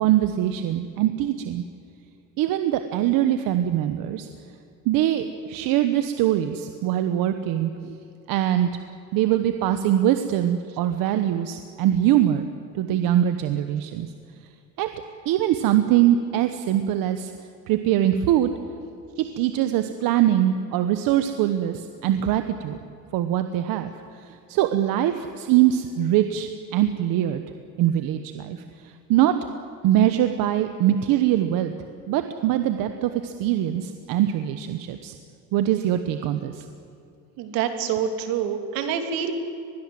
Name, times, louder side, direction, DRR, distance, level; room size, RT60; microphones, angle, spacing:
voice 1, 0.0-1.6 2.4-4.3 4.9-7.9 8.3-8.7 9.1-12.5 12.7-14.1 14.8-14.9 15.3-17.3 17.7-18.5 19.4-22.8 23.1-23.9 24.5-27.4 27.8-28.6 29.1-29.4 29.8-31.7 32.1-35.1 35.5-36.6, right 12 dB, 75° right, 8 dB, 1.2 m, -22 dB
voice 2, 37.4-39.3, right 8 dB, 90° right, 6 dB, 2.7 m, -26 dB
24.0 x 20.5 x 7.7 m, 2.5 s
cardioid pair, 135°, 35 cm